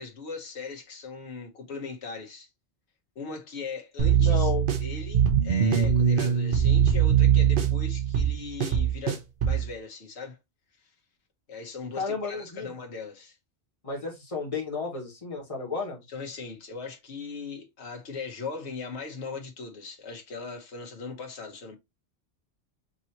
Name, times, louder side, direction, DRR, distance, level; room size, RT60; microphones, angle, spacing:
voice 1, 0.0-2.5 3.1-4.5 4.8-10.4 10.8-10.9 11.5-13.4 16.1-21.8, left 4 dB, 85° left, 1.3 m, -39 dB
sound 1, 4.0-9.7, right 8 dB, 60° right, 0.9 m, -22 dB
voice 2, 4.2-4.7 11.9-12.7 13.8-16.0, left 4 dB, 30° left, 1.6 m, -32 dB
5.3 x 2.9 x 2.7 m
omnidirectional pair, 1.1 m